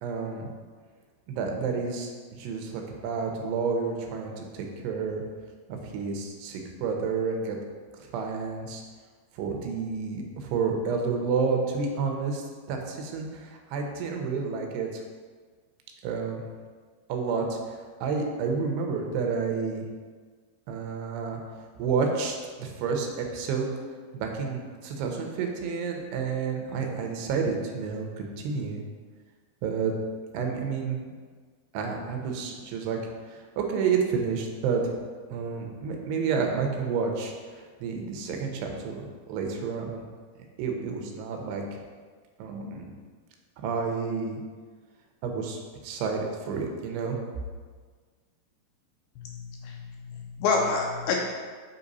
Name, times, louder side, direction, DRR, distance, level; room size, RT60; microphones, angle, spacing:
voice 1, 0.0-0.5 1.3-5.2 5.7-7.6 8.0-8.8 9.4-15.0 16.0-16.4 17.1-17.6 18.0-19.8 20.7-21.4 21.8-23.7 24.1-28.8 29.6-29.9 30.3-31.0 31.7-33.0 33.3-34.9 35.3-40.1 40.6-41.8 42.4-42.9 43.6-44.4 45.2-47.2, right 5 dB, 85° right, 2 dB, 2.9 m, -30 dB
voice 2, 49.2-51.2, left 4 dB, 80° left, 0 dB, 2.3 m, -28 dB
8.3 x 3.2 x 4.0 m, 1.6 s
omnidirectional pair, 4.7 m